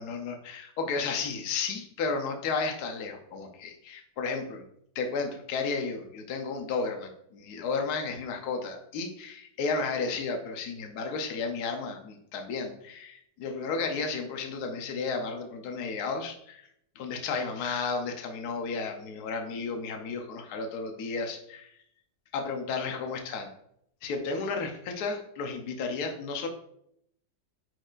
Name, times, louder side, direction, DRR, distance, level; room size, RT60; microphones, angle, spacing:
voice 1, 0.0-4.6 4.9-16.7 16.9-21.7 22.3-23.5 24.0-26.5, left 4 dB, 65° left, 4 dB, 1.3 m, -33 dB
8.9 x 4.7 x 2.5 m, 0.72 s
omnidirectional pair, 1.9 m